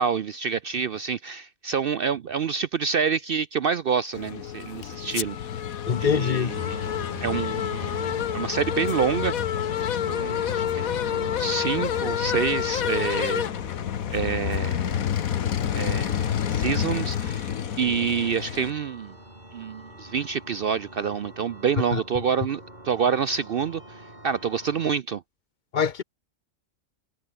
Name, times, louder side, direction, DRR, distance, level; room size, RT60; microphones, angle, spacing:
voice 1, 0.0-5.4 6.0-6.8 7.2-9.3 10.1-13.4 14.1-15.0 15.7-17.5 17.8-19.1 19.5-24.0 24.2-25.2, right 6 dB, 55° right, 0.7 m, -27 dB
sound 1, 4.1-18.7, left 9 dB, 85° left, 1.4 m, -28 dB
voice 2, 5.8-6.5 21.9-22.0 25.7-26.0, left 7 dB, 45° left, 0.7 m, -23 dB
sound 2, 6.5-25.0, right 1 dB, 30° right, 8.3 m, -43 dB
omnidirectional pair, 1.4 m